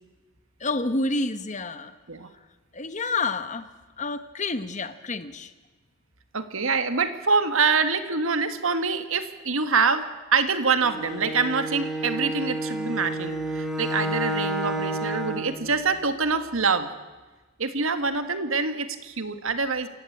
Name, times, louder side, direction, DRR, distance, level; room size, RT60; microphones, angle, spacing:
voice 1, 0.6-1.9 2.7-3.7 4.0-5.5, left 3 dB, 35° left, 11 dB, 1.2 m, -29 dB
voice 2, 6.3-16.9 17.6-19.9, right 4 dB, 75° right, 9 dB, 1.7 m, -25 dB
Bowed string instrument, 10.8-15.6, right 1 dB, ahead, 2.7 m, -30 dB
27.5 x 15.0 x 8.6 m, 1.2 s
head